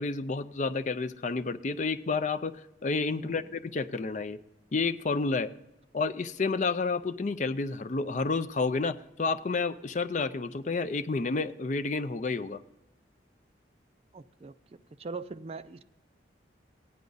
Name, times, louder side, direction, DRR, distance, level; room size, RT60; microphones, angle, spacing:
voice 1, 0.0-2.5 2.8-4.4 4.7-5.5 5.9-12.6, left 4 dB, 40° left, 11 dB, 0.5 m, -30 dB
voice 2, 3.1-3.5 14.1-14.5 15.0-15.9, right 4 dB, 35° right, 12 dB, 0.4 m, -41 dB
16.0 x 9.5 x 4.0 m, 0.95 s
head